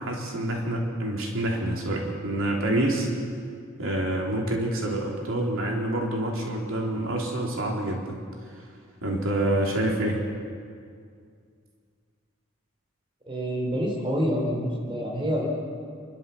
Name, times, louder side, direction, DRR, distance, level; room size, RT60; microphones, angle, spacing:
voice 1, 0.0-3.1 3.8-8.2 9.0-10.2, right 1 dB, 80° right, -1 dB, 3.5 m, -27 dB
voice 2, 13.3-15.5, equal, 25° right, -1 dB, 3.9 m, -27 dB
30.0 x 12.5 x 7.1 m, 2.2 s
head